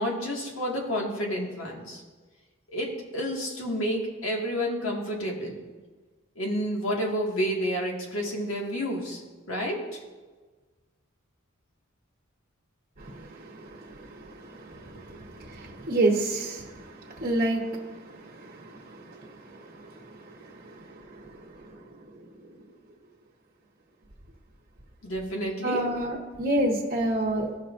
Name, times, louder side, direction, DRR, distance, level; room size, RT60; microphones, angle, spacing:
voice 1, 0.0-2.0 2.7-5.6 6.4-9.2 9.5-10.0 25.0-25.8, equal, 75° left, -1 dB, 1.9 m, -30 dB
voice 2, 13.0-21.9 25.6-27.5, right 1 dB, 40° right, -3 dB, 1.1 m, -30 dB
16.0 x 5.6 x 2.6 m, 1.3 s
head